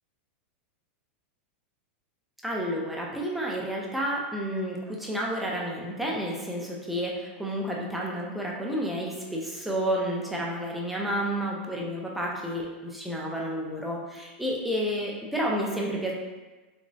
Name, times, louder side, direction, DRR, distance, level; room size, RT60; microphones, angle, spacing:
voice 1, 2.4-16.1, equal, ahead, -3 dB, 0.4 m, -30 dB
3.4 x 3.1 x 2.6 m, 1.2 s
supercardioid pair, 160°, 6 cm